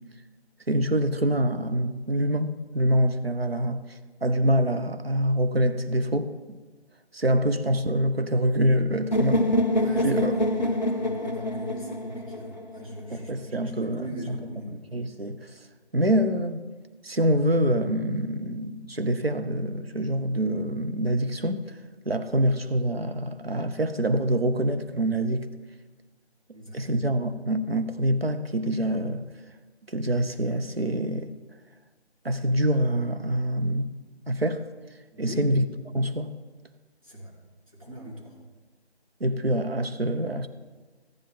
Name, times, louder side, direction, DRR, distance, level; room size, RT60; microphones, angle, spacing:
voice 1, 0.7-6.6 7.1-9.5 10.0-10.3 13.1-14.4 14.9-15.5 15.9-16.7 17.0-21.8 22.0-25.5 26.7-29.2 29.9-31.3 32.2-33.9 34.3-34.7 35.2-35.7 35.9-36.4 39.2-40.5, right 1 dB, 60° right, 0.9 m, -25 dB
sound 1, 9.1-13.1, left 1 dB, 40° left, 0.7 m, -26 dB
voice 2, 9.8-14.8 26.5-27.0 35.1-35.6 37.0-37.3 37.7-38.3, equal, 30° right, 2.8 m, -39 dB
14.5 x 10.5 x 3.7 m
figure-of-eight pair, 175°, 33 cm